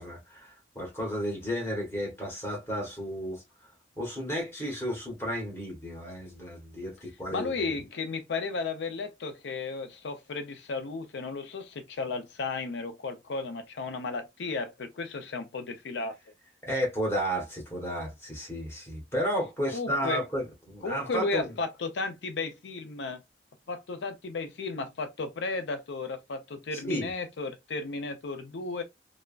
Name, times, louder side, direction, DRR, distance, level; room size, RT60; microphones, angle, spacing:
voice 1, 0.0-3.4 4.0-7.8 16.6-21.5 26.7-27.1, equal, 15° left, 1.1 m, -33 dB
voice 2, 7.3-16.2 19.7-20.2 20.8-23.2 23.7-28.8, left 3 dB, 85° left, 0.5 m, -34 dB
3.3 x 2.0 x 2.3 m
head